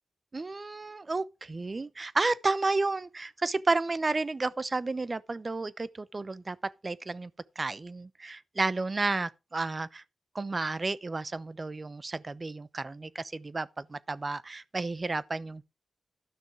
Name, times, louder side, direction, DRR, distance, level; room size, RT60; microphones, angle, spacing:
voice 1, 0.3-7.3 7.6-10.0 10.3-15.7, right 3 dB, 40° right, 0.8 m, -32 dB
12.5 x 6.3 x 4.8 m
cardioid pair, 50°, 0 cm